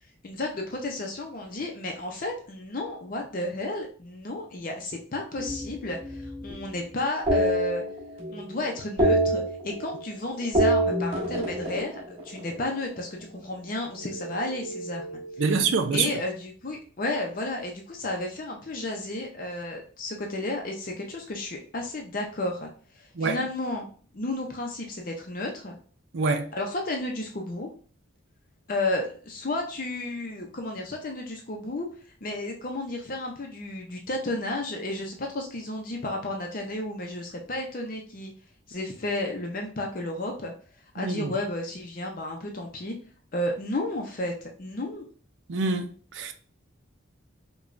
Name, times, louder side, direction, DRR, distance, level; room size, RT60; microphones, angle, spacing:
voice 1, 0.2-7.8 8.3-15.2 15.9-22.7 23.0-23.9 24.1-25.8 26.5-27.7 28.7-31.9 32.2-38.3 38.7-40.5 40.9-42.9 43.3-45.1, left 1 dB, 45° left, 0.6 m, -32 dB
sound 1, 5.4-6.6 7.3-8.4 8.7-10.1 10.4-12.8 14.0-15.7, right 1 dB, 30° right, 1.3 m, -27 dB
voice 2, 15.4-16.1 23.2-23.4 26.1-26.5 41.0-41.3 45.5-46.3, right 4 dB, 70° right, 0.5 m, -26 dB
4.9 x 2.3 x 2.5 m
head